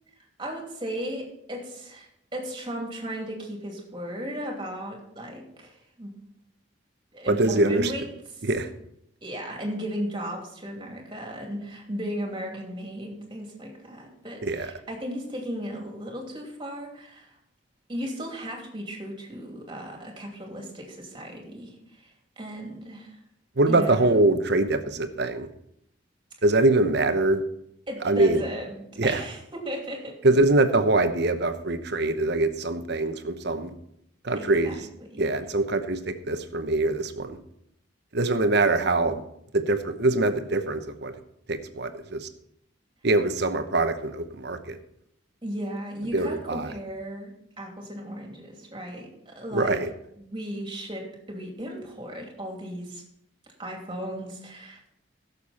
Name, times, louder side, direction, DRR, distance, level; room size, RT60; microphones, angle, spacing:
voice 1, 0.4-6.1 7.1-8.1 8.4-8.5 9.2-17.3 17.9-23.1 23.7-24.0 27.9-30.1 34.3-35.3 45.4-49.8 50.2-53.0 53.6-54.9, equal, 25° right, 0 dB, 2.7 m, -36 dB
voice 2, 7.3-7.9 8.4-8.7 14.4-14.7 23.6-25.5 26.4-27.4 28.0-28.4 29.0-29.2 30.2-33.7 34.2-34.8 35.2-37.4 38.1-39.2 39.5-41.1 41.5-42.3 43.0-44.8 46.1-46.7 49.5-49.9, right 2 dB, 60° right, 9 dB, 0.9 m, -23 dB
16.5 x 6.9 x 4.3 m, 0.75 s
head